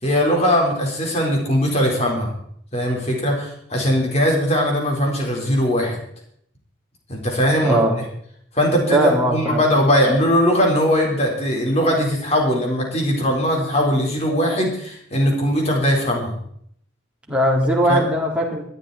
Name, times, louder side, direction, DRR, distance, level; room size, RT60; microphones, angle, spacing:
voice 1, 0.0-2.3 2.7-6.0 7.1-8.1 8.5-16.3 17.9-18.0, equal, 30° left, 0 dB, 4.4 m, -20 dB
voice 2, 7.6-7.9 8.9-9.6 17.3-18.6, right 1 dB, 5° right, -3 dB, 3.8 m, -19 dB
21.0 x 12.5 x 4.3 m, 0.67 s
head